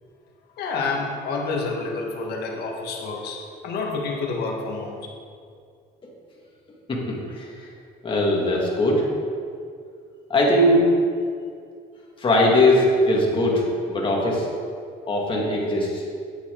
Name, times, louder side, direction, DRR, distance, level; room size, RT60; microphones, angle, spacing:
voice 1, 0.6-5.0, left 3 dB, 70° left, 0 dB, 1.7 m, -28 dB
voice 2, 6.9-7.5 8.0-9.0 10.3-10.8 12.2-14.5 15.1-16.0, left 1 dB, 30° left, -3 dB, 2.4 m, -20 dB
9.2 x 8.6 x 3.9 m, 2.3 s
cardioid pair, 110°, 17 cm